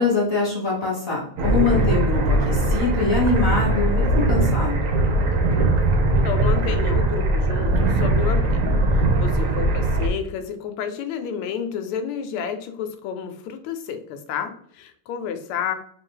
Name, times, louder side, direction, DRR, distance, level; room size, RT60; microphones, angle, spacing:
voice 1, 0.0-4.9, left 3 dB, 35° left, -5 dB, 1.2 m, -23 dB
sound 1, 1.4-10.1, right 2 dB, 65° right, 0.8 m, -20 dB
voice 2, 6.2-15.7, left 8 dB, 85° left, 7 dB, 1.5 m, -30 dB
3.9 x 2.5 x 3.8 m, 0.62 s
omnidirectional pair, 2.4 m